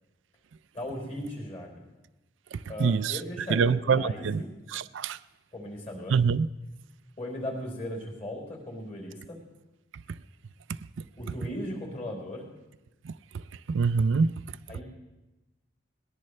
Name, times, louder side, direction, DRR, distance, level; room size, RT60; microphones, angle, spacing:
voice 1, 0.7-1.8 2.7-4.5 5.5-6.2 7.2-9.4 11.2-12.4 14.7-14.8, left 1 dB, 35° left, 4.2 m, -37 dB
voice 2, 2.5-3.2 3.5-4.4 4.7-5.2 6.1-6.5 10.1-10.2 11.0-11.1 13.0-13.4 13.7-14.4, right 5 dB, 90° right, 0.4 m, -25 dB
21.0 x 19.0 x 3.3 m
head